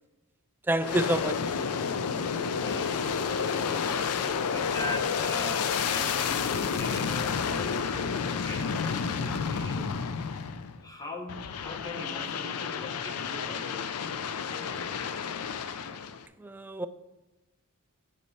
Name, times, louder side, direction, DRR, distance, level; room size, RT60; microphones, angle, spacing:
voice 1, 0.7-1.6 16.4-16.9, right 1 dB, 10° right, 0.3 m, -28 dB
Aircraft, 0.8-10.8 11.3-16.2, left 6 dB, 85° left, 0.5 m, -30 dB
voice 2, 2.2-9.9 10.2-10.4 10.8-15.2, left 2 dB, 15° left, 1.1 m, -41 dB
8.5 x 4.3 x 5.7 m
head